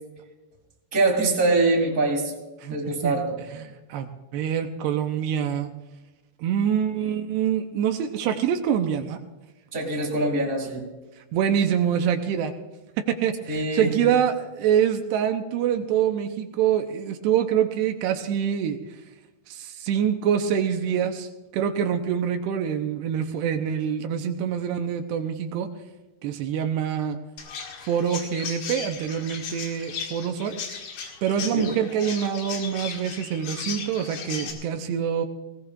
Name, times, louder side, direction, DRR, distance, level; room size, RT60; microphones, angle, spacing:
voice 1, 0.9-2.3 2.7-3.3 9.7-10.9 13.5-14.1 31.5-31.7, right 2 dB, 20° right, -2 dB, 2.8 m, -23 dB
voice 2, 2.6-3.2 3.5-5.7 6.4-9.2 11.3-12.5 13.0-18.8 19.5-21.3 21.5-25.7 26.2-27.2 27.9-30.6 31.2-35.3, right 8 dB, 85° right, 5 dB, 2.8 m, -25 dB
Chirp tweet, 27.4-34.5, left 6 dB, 80° left, 3.9 m, -36 dB
19.5 x 18.0 x 2.4 m, 1.1 s
omnidirectional pair, 4.8 m